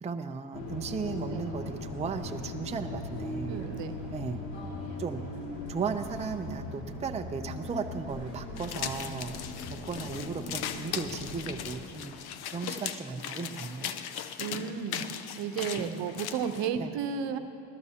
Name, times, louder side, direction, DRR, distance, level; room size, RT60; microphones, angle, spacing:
voice 1, 0.0-3.6 4.1-4.4 5.0-5.2 5.7-9.3 9.7-12.1 12.5-13.9 14.5-14.7 15.8-16.0 16.8-16.9, right 5 dB, 15° right, 6 dB, 0.5 m, -36 dB
sound 1, 0.5-11.8, left 2 dB, 75° left, 2.4 m, -39 dB
voice 2, 3.5-3.9 14.4-15.1 15.4-17.4, right 7 dB, 65° right, 8 dB, 0.9 m, -33 dB
sound 2, 8.6-16.7, left 9 dB, 55° left, 0.7 m, -38 dB
19.5 x 13.0 x 2.8 m, 2.8 s
supercardioid pair, 90°, 46 cm